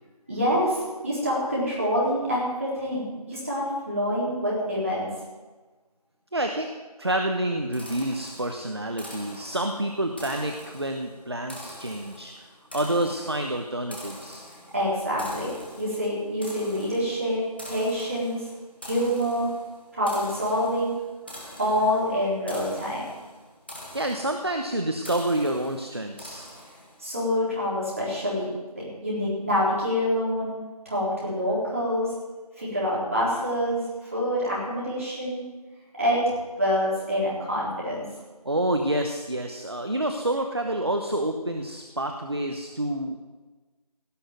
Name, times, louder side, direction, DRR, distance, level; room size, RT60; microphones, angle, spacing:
voice 1, 0.3-5.1 14.7-15.5 15.8-18.4 18.8-19.5 19.9-20.9 21.6-23.0 27.0-30.5 30.9-32.1 32.6-35.4 36.0-36.2 36.6-38.0, equal, 20° right, -7 dB, 3.9 m, -26 dB
voice 2, 6.3-6.7 7.0-14.5 21.3-21.6 23.9-26.5 38.4-43.2, right 1 dB, 40° right, 4 dB, 1.0 m, -28 dB
sound 1, 7.7-27.1, left 1 dB, 15° left, 1.6 m, -45 dB
17.0 x 6.2 x 9.3 m, 1.2 s
figure-of-eight pair, 180°, 20 cm